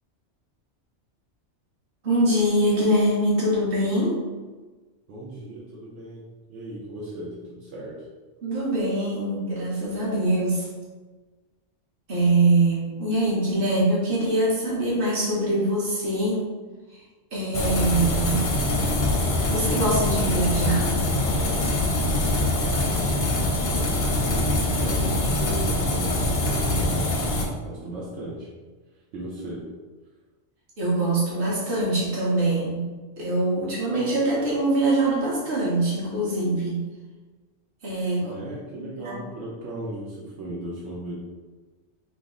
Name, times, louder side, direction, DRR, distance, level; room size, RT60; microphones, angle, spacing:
voice 1, 2.0-4.2 8.4-10.7 12.1-16.5 17.3-18.5 19.5-20.9 30.8-32.9 33.2-36.8 37.8-38.3 38.8-39.2, right 1 dB, 50° right, -6 dB, 1.2 m, -23 dB
voice 2, 5.1-8.1 22.8-27.4 27.6-28.5 29.1-29.7 38.2-41.1, right 1 dB, 80° right, -6 dB, 1.0 m, -37 dB
sound 1, 17.5-27.4, left 1 dB, 55° left, 0.6 m, -24 dB
3.4 x 2.0 x 3.6 m, 1.3 s
omnidirectional pair, 1.2 m